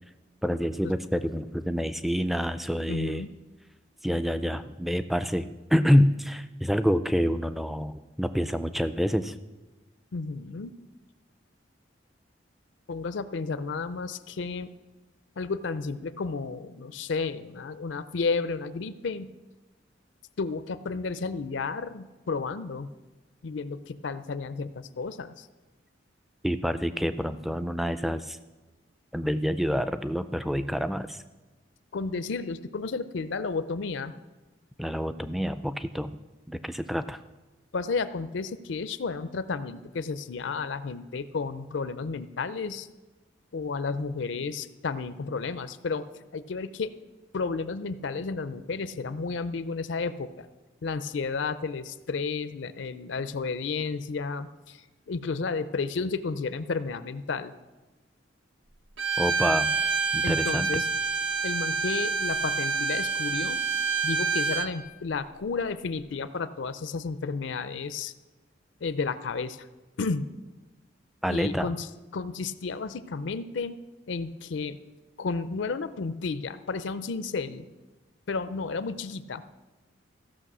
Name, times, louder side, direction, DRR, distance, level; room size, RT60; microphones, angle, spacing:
voice 1, 0.4-3.2 4.0-9.3 26.4-28.4 29.1-31.2 34.8-36.2 36.5-37.2 59.2-59.7 60.1-60.7 71.2-71.7, equal, ahead, 11 dB, 0.3 m, -27 dB
voice 2, 2.9-3.3 10.1-10.7 12.9-14.7 15.4-19.3 20.4-22.9 23.4-25.5 31.9-34.1 37.7-42.9 43.5-46.1 46.3-46.9 47.3-50.5 50.8-54.8 55.1-57.5 60.2-60.9 61.4-63.6 64.0-68.1 68.8-69.7 70.0-70.3 71.3-71.9 72.1-73.8 74.1-74.8 75.2-77.7 78.3-79.4, left 4 dB, 75° left, 13 dB, 0.5 m, -32 dB
Bowed string instrument, 59.0-64.7, right 4 dB, 80° right, 0.8 m, -27 dB
15.0 x 6.3 x 6.1 m, 1.2 s
head